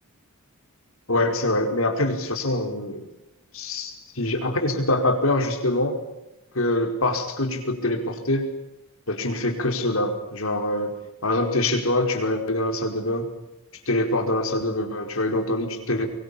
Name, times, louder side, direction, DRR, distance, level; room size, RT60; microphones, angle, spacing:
voice 1, 1.1-3.0 3.5-6.0 6.5-8.5 9.1-10.9 11.2-13.3 13.9-16.1, left 1 dB, 65° left, 4 dB, 5.0 m, -24 dB
24.5 x 23.5 x 8.7 m, 0.89 s
head